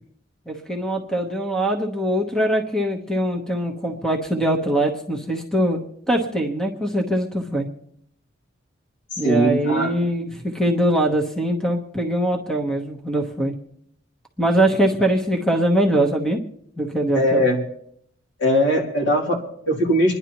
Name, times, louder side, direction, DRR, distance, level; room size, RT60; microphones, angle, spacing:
voice 1, 0.5-5.8 6.1-7.7 9.2-13.5 14.4-16.4 16.8-17.4, right 1 dB, 5° left, 2 dB, 1.0 m, -22 dB
voice 2, 9.2-9.9 17.1-17.6 18.4-20.2, equal, 65° left, -2 dB, 3.1 m, -20 dB
26.5 x 11.0 x 3.0 m, 0.69 s
head